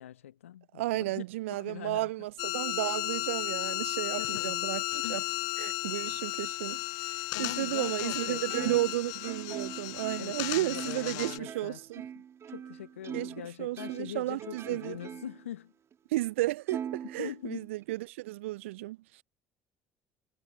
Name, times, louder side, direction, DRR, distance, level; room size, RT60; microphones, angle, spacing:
voice 1, 0.0-1.2 1.5-2.1 4.2-4.6 5.0-5.3 7.3-8.8 9.5-9.6 10.2-11.8 12.1-15.7 17.2-17.7, left 11 dB, 80° left, 1.0 m, -42 dB
voice 2, 0.7-5.2 5.6-7.1 7.4-12.1 13.1-15.0 16.1-19.2, right 18 dB, 75° right, 0.4 m, -33 dB
sound 1, 2.4-11.4, left 26 dB, 60° left, 0.6 m, -34 dB
Plucked string instrument, 8.5-13.4 13.8-15.5 15.9-16.0 16.7-17.8, right 8 dB, 40° right, 2.8 m, -42 dB
figure-of-eight pair, 60°, 7 cm